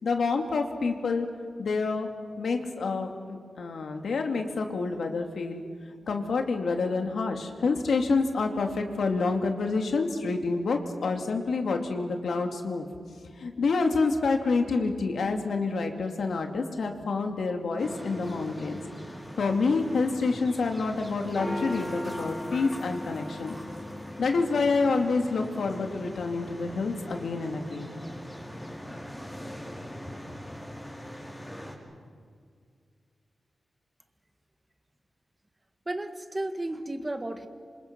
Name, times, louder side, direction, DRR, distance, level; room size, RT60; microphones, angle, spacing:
voice 1, 0.0-1.3 1.6-2.1 2.4-5.6 6.1-12.9 13.4-18.8 19.4-23.6 24.2-27.9, left 4 dB, 80° left, 4 dB, 2.6 m, -28 dB
sound 1, 17.8-31.7, left 1 dB, 10° left, 4.9 m, -40 dB
voice 2, 35.9-37.5, right 1 dB, 20° right, 7 dB, 1.8 m, -33 dB
27.5 x 26.5 x 6.1 m, 2.1 s
wide cardioid pair, 100°, 0 cm